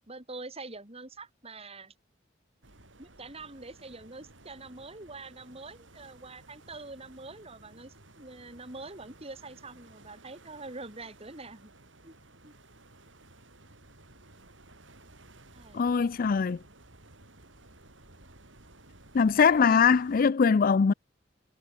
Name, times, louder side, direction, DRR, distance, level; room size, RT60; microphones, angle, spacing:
voice 1, 0.1-1.9 3.0-11.7 12.0-12.1 12.4-12.5 15.5-15.9 19.4-20.0, right 3 dB, 35° right, 4.0 m, -45 dB
sound 1, 2.6-20.3, right 2 dB, 85° right, 6.4 m, -55 dB
voice 2, 15.7-16.6 19.1-20.9, left 5 dB, 50° left, 0.4 m, -22 dB
head